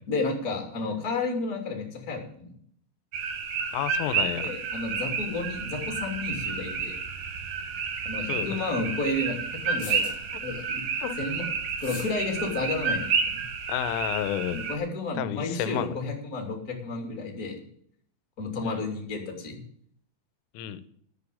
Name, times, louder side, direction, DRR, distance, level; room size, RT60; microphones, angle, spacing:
voice 1, 0.1-2.5 4.4-7.0 8.0-10.1 10.4-10.8 11.2-11.5 11.8-13.4 14.5-17.5 18.4-19.6, left 3 dB, 25° left, 2 dB, 2.1 m, -31 dB
sound 1, 3.1-14.8, right 5 dB, 60° right, 2.2 m, -31 dB
voice 2, 3.7-4.5 8.3-8.6 11.0-11.2 13.7-14.6 15.2-15.9 18.6-18.8 20.5-20.8, left 11 dB, 80° left, 12 dB, 3.4 m, -30 dB
sound 2, 7.6-7.7 9.6-10.3 11.7-12.2, left 5 dB, 45° left, 2.3 m, -42 dB
11.5 x 7.5 x 8.5 m, 0.64 s
omnidirectional pair, 5.9 m